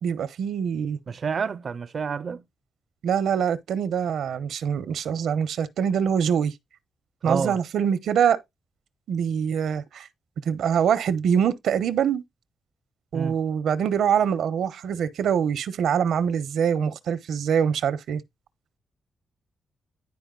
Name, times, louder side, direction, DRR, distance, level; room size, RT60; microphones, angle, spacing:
voice 1, 0.0-1.0 3.0-6.5 7.2-8.4 9.1-10.1 10.4-12.2 13.1-18.2, right 8 dB, 85° right, 0.9 m, -24 dB
voice 2, 1.1-2.4 7.2-7.6 13.1-13.3, right 6 dB, 40° right, 0.4 m, -29 dB
10.5 x 4.8 x 3.9 m
wide cardioid pair, 180°, 0 cm